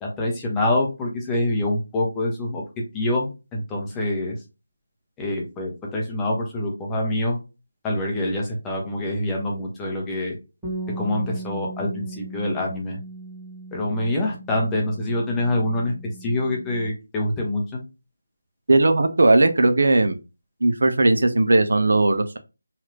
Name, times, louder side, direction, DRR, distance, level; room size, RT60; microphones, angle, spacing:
voice 1, 0.0-2.6 2.9-4.4 5.2-7.4 7.8-10.3 11.0-13.0 13.7-15.9 16.2-17.8, left 1 dB, 10° left, -2 dB, 0.6 m, -25 dB
Bass guitar, 10.6-16.9, right 2 dB, 5° right, 1.4 m, -38 dB
voice 2, 18.7-20.2 20.6-22.4, right 2 dB, 60° right, 8 dB, 0.5 m, -18 dB
2.9 x 2.4 x 3.1 m, 0.29 s
figure-of-eight pair, 165°, 0 cm